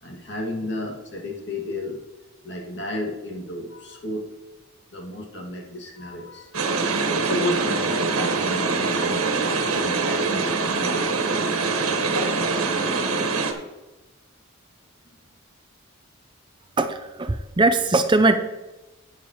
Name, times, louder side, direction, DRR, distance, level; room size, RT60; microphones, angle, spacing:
voice 1, 0.0-2.0 2.4-4.3 4.9-11.0, left 1 dB, 55° left, 0 dB, 2.3 m, -33 dB
sound 1, 6.5-13.5, right 4 dB, 90° right, 1.5 m, -24 dB
voice 2, 16.8-18.4, right 2 dB, 20° right, 8 dB, 0.5 m, -20 dB
11.5 x 9.5 x 3.1 m, 1.1 s
head